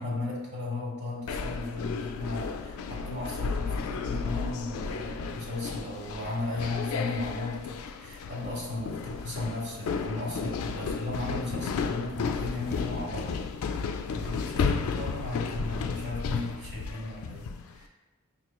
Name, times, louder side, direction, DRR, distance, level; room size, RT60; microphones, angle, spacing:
voice 1, 0.0-13.3 14.1-17.9, left 2 dB, 60° right, -3 dB, 1.1 m, -35 dB
sound 1, 1.3-17.7, left 5 dB, 85° left, 0.3 m, -33 dB
5.4 x 3.0 x 2.2 m, 1.1 s
head